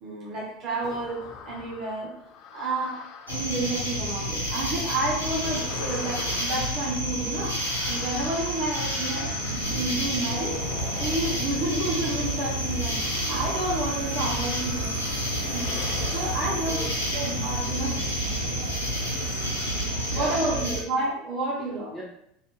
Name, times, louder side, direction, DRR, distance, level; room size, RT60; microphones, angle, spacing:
voice 1, 0.0-2.1 2.5-3.0 3.3-10.6 11.0-15.2 15.5-15.7 16.1-16.8 17.1-18.6 19.9-21.9, right 2 dB, 45° right, -5 dB, 0.8 m, -30 dB
sound 1, 0.8-4.5 5.1-18.0 18.8-20.4 20.6-20.7, left 5 dB, 50° left, 0.4 m, -44 dB
sound 2, 3.3-20.8, equal, 85° left, 0.7 m, -29 dB
sound 3, 9.4-20.3, right 1 dB, 80° right, 0.5 m, -38 dB
voice 2, 16.6-17.3 20.1-20.8 21.9-22.0, equal, ahead, -7 dB, 1.3 m, -39 dB
2.6 x 2.4 x 3.4 m, 0.74 s
figure-of-eight pair, 80°, 0 cm